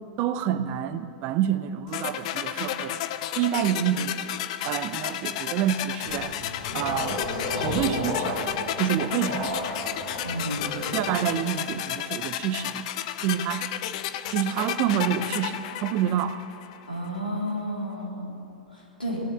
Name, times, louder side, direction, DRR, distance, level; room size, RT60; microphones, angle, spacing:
voice 1, 0.0-3.0 3.3-4.4 4.6-6.4 6.7-7.2 7.6-9.6 10.9-12.9 13.2-13.7 14.3-16.4, right 10 dB, 35° right, 12 dB, 0.6 m, -28 dB
sound 1, 1.9-16.8, left 11 dB, 45° left, 0.7 m, -32 dB
sound 2, 6.0-11.7, left 2 dB, 65° left, 3.8 m, -33 dB
voice 2, 10.2-10.7 16.9-18.3 18.7-19.2, equal, 85° left, -4 dB, 3.6 m, -32 dB
19.0 x 7.1 x 9.4 m, 2.7 s
figure-of-eight pair, 100°, 5 cm